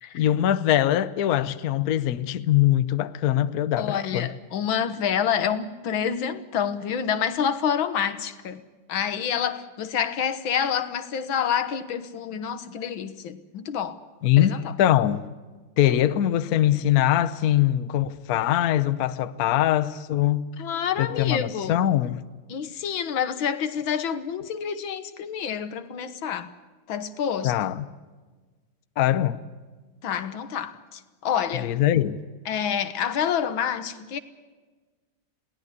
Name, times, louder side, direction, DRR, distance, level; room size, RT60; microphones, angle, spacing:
voice 1, 0.1-4.3 14.2-15.3 15.8-20.4 21.0-22.2 27.4-27.8 29.0-29.4 31.6-32.2, left 12 dB, 60° left, 1.2 m, -22 dB
voice 2, 3.8-8.6 8.9-14.0 14.4-14.7 20.6-21.8 22.5-26.5 26.9-27.5 30.0-31.7 32.5-34.2, left 8 dB, 85° left, 2.0 m, -28 dB
21.5 x 17.5 x 9.8 m
omnidirectional pair, 2.1 m